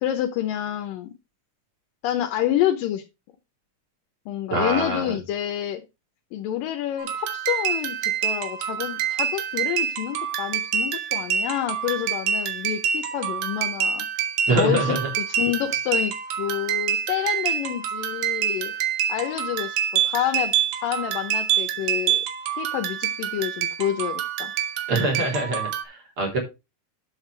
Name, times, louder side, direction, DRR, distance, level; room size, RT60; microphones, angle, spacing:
voice 1, 0.0-1.1 2.0-3.0 4.3-5.8 6.3-14.1 14.6-18.7 19.1-20.6 20.8-22.2 22.6-24.5, left 11 dB, 80° left, 6 dB, 2.6 m, -28 dB
voice 2, 4.5-5.2 14.5-15.1 24.9-26.4, right 2 dB, 40° right, 0 dB, 4.1 m, -24 dB
sound 1, 7.0-25.9, right 8 dB, 80° right, 2.8 m, -27 dB
9.0 x 7.8 x 3.3 m, 0.25 s
omnidirectional pair, 3.9 m